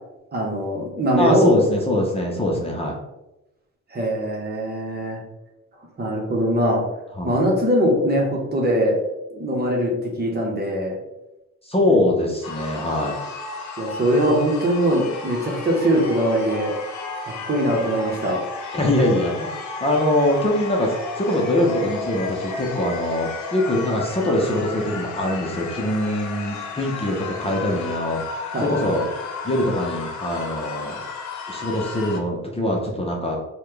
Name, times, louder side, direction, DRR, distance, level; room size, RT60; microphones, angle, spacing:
voice 1, 0.3-1.6 3.9-5.2 6.0-6.8 7.2-9.0 9.3-11.0 13.8-16.7 17.2-18.4 28.5-28.7, equal, 35° right, -1 dB, 1.1 m, -21 dB
voice 2, 1.2-3.0 7.2-7.4 11.7-13.2 18.7-29.0 29.4-31.0 31.5-33.4, left 1 dB, 20° left, -1 dB, 0.8 m, -23 dB
sound 1, 12.4-32.2, left 4 dB, 70° left, 0.8 m, -33 dB
4.1 x 2.4 x 3.3 m, 0.94 s
cardioid pair, 90°, 30 cm